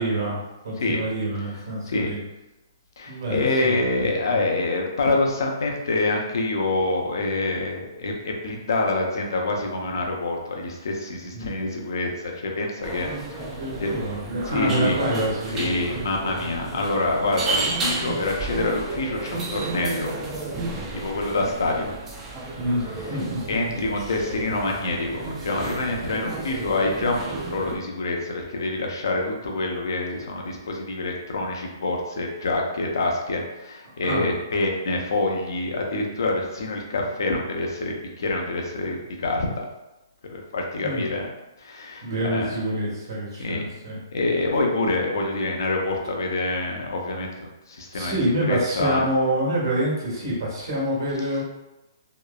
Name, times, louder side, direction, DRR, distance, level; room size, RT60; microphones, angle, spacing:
voice 1, 0.0-2.2 3.1-4.5 11.3-11.6 13.4-16.0 22.6-23.4 34.0-34.3 40.8-41.1 42.0-44.0 47.9-51.4, right 1 dB, 70° right, -5 dB, 1.2 m, -27 dB
voice 2, 3.0-13.9 14.5-15.0 15.5-20.1 20.9-21.9 23.5-39.6 40.3-41.3 41.6-42.5 43.4-43.6 44.1-48.1 48.5-49.0, left 2 dB, 75° left, 1 dB, 0.6 m, -26 dB
sound 1, 12.8-27.8, right 3 dB, 20° right, 0.4 m, -32 dB
2.9 x 2.0 x 2.3 m, 0.99 s
hypercardioid pair, 140°, 2 cm